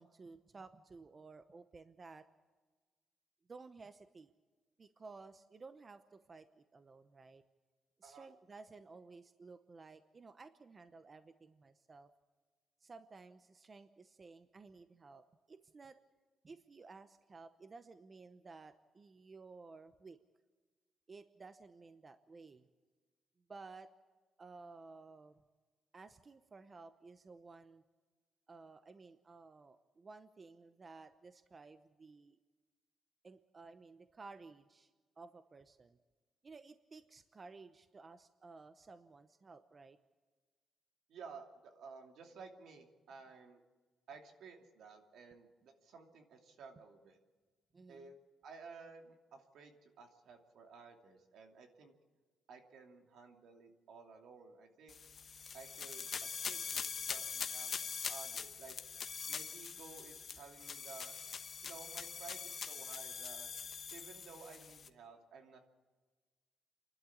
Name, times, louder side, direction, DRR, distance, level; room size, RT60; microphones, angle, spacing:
voice 1, 0.0-2.3 3.5-4.3 4.8-7.4 8.0-12.1 12.8-16.0 16.4-20.2 21.1-22.7 23.5-23.9 24.4-25.4 25.9-27.8 28.5-32.4 33.2-34.9 35.2-36.0 36.4-40.0 47.7-48.1, right 4 dB, 30° right, 10 dB, 0.8 m, -55 dB
voice 2, 41.1-43.6 44.1-47.2 47.9-48.2 48.4-51.9 52.5-55.0 55.5-58.8 59.3-61.1 61.6-63.5 63.9-65.6, right 5 dB, 75° right, 4 dB, 2.7 m, -55 dB
sound 1, 54.9-64.9, left 6 dB, 45° left, 1.1 m, -43 dB
28.5 x 12.0 x 8.5 m, 1.4 s
cardioid pair, 115°, 0 cm